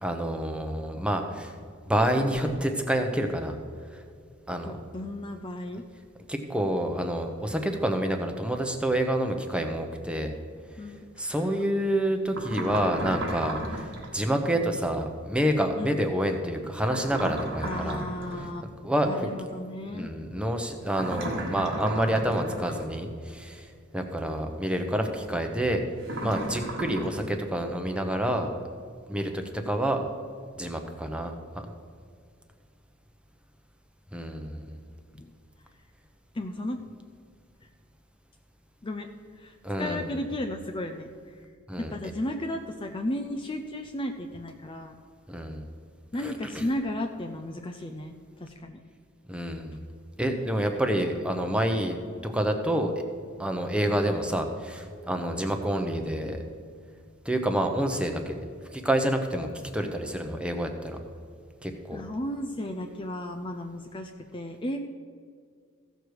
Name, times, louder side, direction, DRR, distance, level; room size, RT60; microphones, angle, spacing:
voice 1, 0.0-1.5 1.9-3.6 3.9-4.0 4.5-4.8 6.3-10.3 11.2-18.0 18.8-19.3 19.9-23.7 23.9-25.8 26.2-28.5 29.1-30.0 30.6-31.6 34.1-34.8 39.6-40.1 41.7-41.9 45.3-45.7 46.2-46.6 49.3-49.8 50.2-52.9 53.4-56.4 57.2-58.4 58.7-61.0 61.6-62.0, right 1 dB, 5° right, 5 dB, 0.8 m, -28 dB
voice 2, 4.7-5.8 10.8-11.6 15.8-16.0 17.6-18.6 19.0-20.1 35.1-35.3 36.3-36.8 38.8-39.1 39.4-41.1 41.8-45.0 46.1-48.8 53.8-54.0 61.9-64.8, left 1 dB, 25° left, 4 dB, 0.5 m, -34 dB
sound 1, 12.3-14.1 16.9-18.5 20.9-22.9 26.0-27.3, right 1 dB, 60° right, 1.4 m, -35 dB
15.5 x 6.6 x 4.7 m, 2.1 s
head